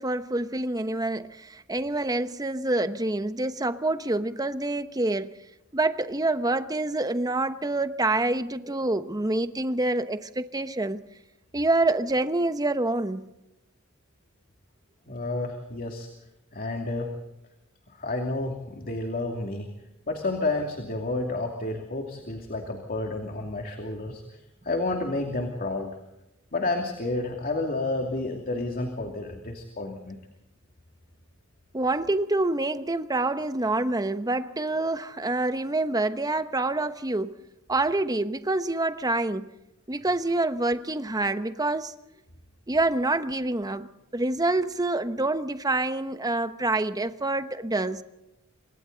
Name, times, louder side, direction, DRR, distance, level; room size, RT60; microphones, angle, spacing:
voice 1, 0.0-5.3 5.7-11.0 11.5-13.3 31.7-37.3 37.7-39.5 39.9-41.9 42.7-48.0, right 2 dB, 20° right, 1.0 m, -27 dB
voice 2, 15.1-16.1 16.5-17.1 18.0-19.7 20.1-24.2 24.6-26.0 26.5-30.2, left 2 dB, 45° left, 2.6 m, -30 dB
28.0 x 24.5 x 4.0 m
head